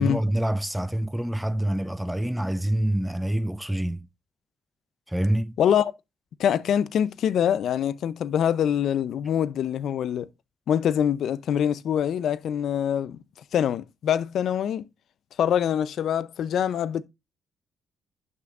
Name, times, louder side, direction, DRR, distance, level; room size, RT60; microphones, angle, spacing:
voice 1, 0.0-4.1 5.1-5.6, right 1 dB, 5° right, 0.4 m, -26 dB
voice 2, 5.6-5.9 6.4-10.3 10.7-13.2 13.5-14.9 15.4-17.0, left 9 dB, 70° left, 0.6 m, -24 dB
11.5 x 6.1 x 2.5 m
cardioid pair, 90°, 0 cm